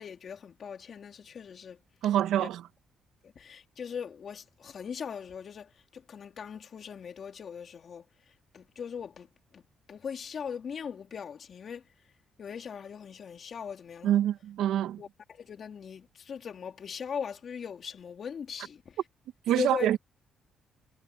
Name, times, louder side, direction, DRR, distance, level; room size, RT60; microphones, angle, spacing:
voice 1, 0.0-1.8 2.4-2.5 3.2-8.0 8.5-9.3 9.5-9.6 9.9-11.8 12.4-14.2 15.0-19.0 19.5-19.9, left 7 dB, 50° left, 3.6 m, -39 dB
voice 2, 2.0-2.6 14.0-15.0 19.5-20.0, right 11 dB, 85° right, 1.6 m, -26 dB
cardioid pair, 90°, 0 cm